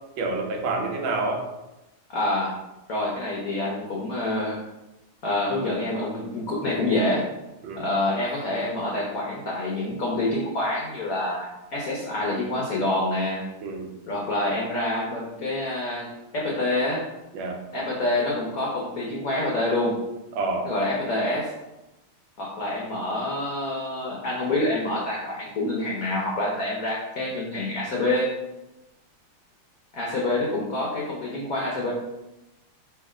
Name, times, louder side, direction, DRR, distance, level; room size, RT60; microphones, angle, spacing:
voice 1, 0.2-1.5 7.6-7.8 13.6-13.9 17.3-17.6 20.3-20.7, right 3 dB, 70° right, 2 dB, 1.5 m, -28 dB
voice 2, 2.1-2.6 2.9-4.6 5.2-7.3 7.8-13.4 14.1-16.1 16.3-17.1 17.7-20.0 20.6-21.5 22.4-28.3 29.9-31.9, left 1 dB, 60° left, -4 dB, 0.9 m, -27 dB
3.4 x 3.2 x 4.8 m, 0.97 s
omnidirectional pair, 2.3 m